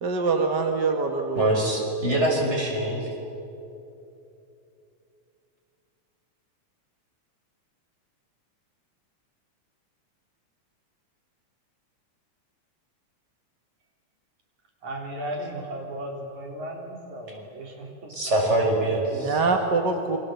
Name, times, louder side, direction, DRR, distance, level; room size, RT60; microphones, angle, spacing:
voice 1, 0.0-1.5 19.1-20.2, right 4 dB, 45° right, 4 dB, 1.8 m, -24 dB
voice 2, 1.3-3.1 18.1-19.4, right 1 dB, 20° right, -1 dB, 6.3 m, -24 dB
voice 3, 14.8-18.4, right 1 dB, 75° right, 0 dB, 5.0 m, -36 dB
29.0 x 25.0 x 8.0 m, 2.8 s
omnidirectional pair, 3.4 m